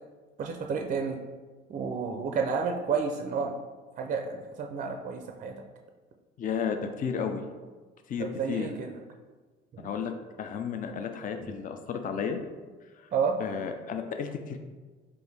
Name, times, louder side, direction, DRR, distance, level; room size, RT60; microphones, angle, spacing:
voice 1, 0.4-1.2 1.7-3.5 4.0-5.5 8.2-8.9 9.7-9.9 13.1-13.3, right 5 dB, 40° right, 3 dB, 0.4 m, -30 dB
voice 2, 6.4-7.5 8.1-8.7 9.8-10.1 10.4-12.4 13.0-13.1 13.4-14.6, left 6 dB, 40° left, 6 dB, 0.4 m, -33 dB
4.6 x 2.6 x 3.3 m, 1.4 s
cardioid pair, 90°, 21 cm